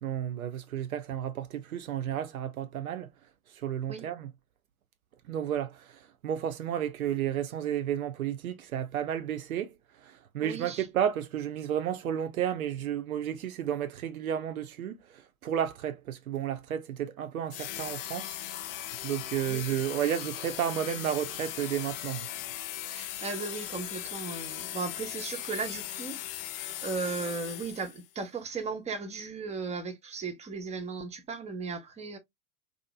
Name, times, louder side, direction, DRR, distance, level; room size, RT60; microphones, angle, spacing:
voice 1, 0.0-3.1 3.5-4.3 5.3-9.7 10.0-15.0 15.4-18.3 19.0-22.3, right 10 dB, 75° right, 0.6 m, -32 dB
voice 2, 10.4-10.9 19.5-19.6 22.9-26.5 26.8-32.2, right 4 dB, 15° right, 0.8 m, -36 dB
sound 1, 17.5-28.1, left 12 dB, 40° left, 0.5 m, -38 dB
2.8 x 2.5 x 2.2 m
figure-of-eight pair, 90°, 43 cm